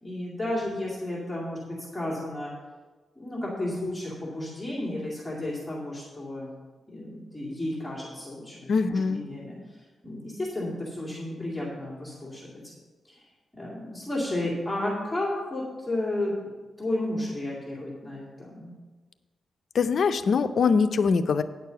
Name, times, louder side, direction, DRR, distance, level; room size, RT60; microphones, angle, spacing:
voice 1, 0.0-2.5 3.2-6.5 6.9-9.6 10.0-12.6 13.1-13.2 13.5-18.7, left 1 dB, 5° left, -6 dB, 2.3 m, -32 dB
voice 2, 8.7-9.2 19.7-21.4, left 5 dB, 60° left, 11 dB, 0.5 m, -23 dB
9.6 x 6.7 x 5.8 m, 1.3 s
wide cardioid pair, 125°, 0 cm